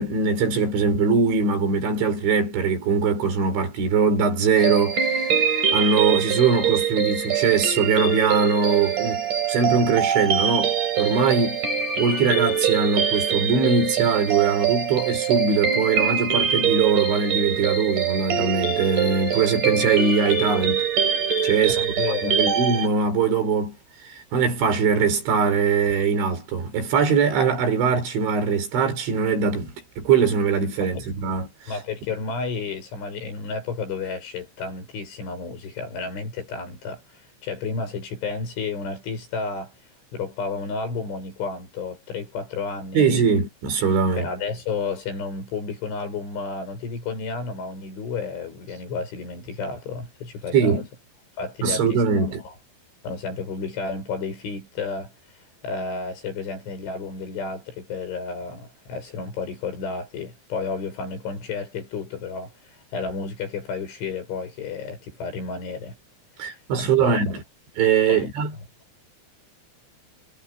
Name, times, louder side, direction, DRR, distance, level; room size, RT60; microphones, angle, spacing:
voice 1, 0.0-11.6 12.0-20.8 21.4-21.8 22.2-23.7 24.3-31.5 42.9-44.3 50.5-50.9 51.6-52.4 66.4-67.4 67.8-68.5, right 5 dB, 75° right, 6.8 m, -22 dB
sound 1, 4.6-22.9, right 7 dB, 45° right, 5.8 m, -24 dB
voice 2, 21.8-22.6 30.8-31.1 31.7-39.7 40.1-43.1 44.2-50.8 51.4-52.5 53.0-55.1 55.6-66.0 66.8-67.2 68.1-68.3, left 4 dB, 80° left, 10.5 m, -31 dB
omnidirectional pair, 5.4 m